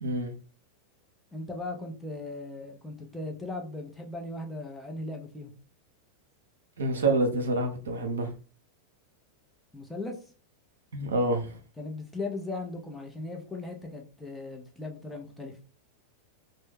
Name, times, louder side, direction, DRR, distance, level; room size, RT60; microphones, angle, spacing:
voice 1, 0.0-0.3 6.8-8.3 10.9-11.6, right 2 dB, 65° right, 0.7 m, -27 dB
voice 2, 1.3-5.5 9.7-10.2 11.8-15.5, left 2 dB, 5° left, 0.7 m, -38 dB
3.1 x 2.1 x 3.3 m
figure-of-eight pair, 90°, 0 cm